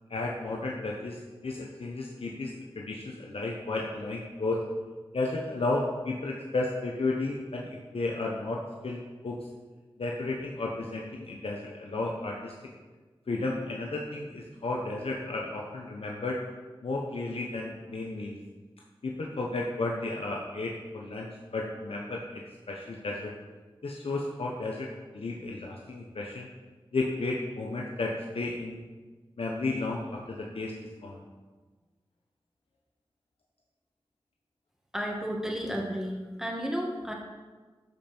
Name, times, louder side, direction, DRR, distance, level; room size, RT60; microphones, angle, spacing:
voice 1, 0.1-4.6 5.1-9.4 10.0-12.5 13.3-16.4 16.8-18.4 19.0-22.4 22.7-23.3 23.8-24.9 25.1-26.5 26.9-28.8 29.4-30.7 31.0-31.2, left 2 dB, 80° left, -1 dB, 1.0 m, -33 dB
voice 2, 34.9-37.1, equal, 5° right, -1 dB, 2.1 m, -32 dB
13.0 x 5.4 x 4.5 m, 1.3 s
wide cardioid pair, 45°, 10 cm